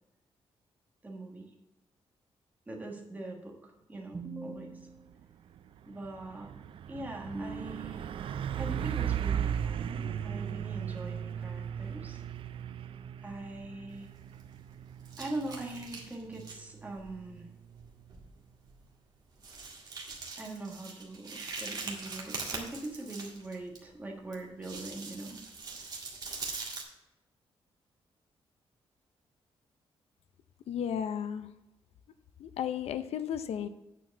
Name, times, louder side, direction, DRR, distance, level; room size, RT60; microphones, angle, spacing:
voice 1, 1.0-1.5 2.7-5.2 5.9-6.5 6.9-8.3 8.6-12.2 13.2-14.1 15.2-17.5 20.4-25.4, right 2 dB, 15° right, -1 dB, 1.5 m, -42 dB
Truck, 5.0-5.2 5.6-18.1, right 9 dB, 60° right, 0.4 m, -37 dB
sound 1, 14.0-14.7 15.1-16.6 17.0-17.1 17.8-17.9 18.1-18.3 18.7-18.8 19.4-23.8 24.3-26.8, right 4 dB, 40° right, 1.9 m, -42 dB
voice 2, 30.7-31.5 32.4-33.7, left 9 dB, 80° left, 11 dB, 0.6 m, -34 dB
9.1 x 4.7 x 7.1 m, 0.92 s
wide cardioid pair, 165°, 10 cm